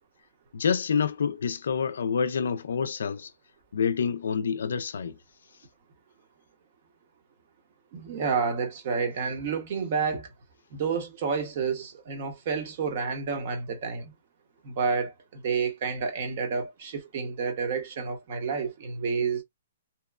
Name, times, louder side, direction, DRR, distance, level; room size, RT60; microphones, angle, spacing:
voice 1, 0.5-3.3 3.7-5.2, left 6 dB, 85° left, 0.3 m, -27 dB
voice 2, 7.9-10.3 10.7-14.1 14.6-19.4, right 5 dB, 45° right, 0.8 m, -30 dB
2.8 x 2.0 x 2.3 m
hypercardioid pair, 165°, 0 cm